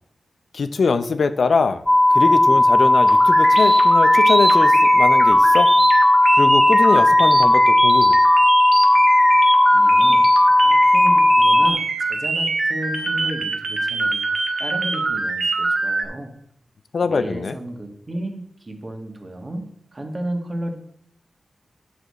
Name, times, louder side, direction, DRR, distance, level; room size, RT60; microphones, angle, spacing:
voice 1, 0.5-1.8 2.1-5.7 6.4-8.2 16.9-17.6, left 4 dB, 70° left, 11 dB, 0.5 m, -22 dB
sound 1, 1.9-11.7, left 1 dB, 15° left, 0.3 m, -15 dB
sound 2, 3.1-16.0, right 3 dB, 75° right, 1.1 m, -24 dB
voice 2, 9.7-14.2 14.6-16.3 17.0-20.7, right 1 dB, 35° right, 3 dB, 1.4 m, -33 dB
8.9 x 6.5 x 4.1 m, 0.70 s
wide cardioid pair, 95°, 0 cm